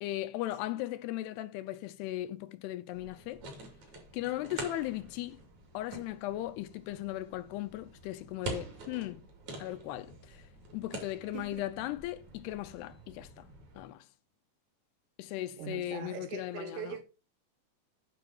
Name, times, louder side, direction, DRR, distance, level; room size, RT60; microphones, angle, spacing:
voice 1, 0.0-3.4 4.1-5.4 5.7-9.2 9.6-10.5 10.7-13.5 13.8-14.1 15.2-17.0, left 15 dB, 80° left, 2.7 m, -37 dB
sound 1, 2.9-13.8, right 3 dB, 45° right, 3.4 m, -47 dB
voice 2, 11.3-11.7 15.6-17.0, right 7 dB, 85° right, 3.5 m, -41 dB
9.0 x 5.5 x 6.0 m
omnidirectional pair, 4.9 m